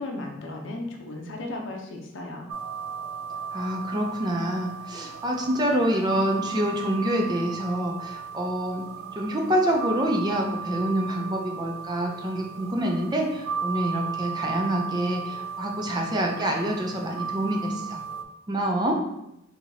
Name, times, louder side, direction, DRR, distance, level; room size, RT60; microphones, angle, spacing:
voice 1, 0.0-2.5, left 2 dB, 65° left, 1 dB, 0.6 m, -35 dB
sound 1, 2.5-18.2, right 6 dB, 85° right, 0.3 m, -35 dB
voice 2, 3.5-8.9 9.2-18.0 18.5-19.0, right 1 dB, 20° right, 0 dB, 0.4 m, -26 dB
4.6 x 2.8 x 2.7 m, 0.86 s
head